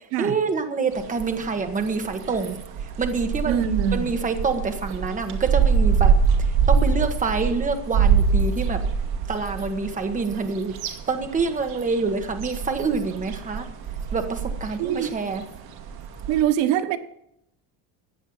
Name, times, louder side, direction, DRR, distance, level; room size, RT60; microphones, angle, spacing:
voice 1, 0.2-2.6 3.0-6.1 6.7-8.8 9.3-10.7 11.1-13.7 14.1-15.4, right 4 dB, 15° right, 1.4 m, -26 dB
sound 1, 0.9-16.4, right 6 dB, 55° right, 2.2 m, -25 dB
voice 2, 3.4-4.1 14.8-15.1 16.3-17.0, right 10 dB, 85° right, 1.3 m, -23 dB
15.0 x 9.3 x 5.6 m
cardioid pair, 165°, 44 cm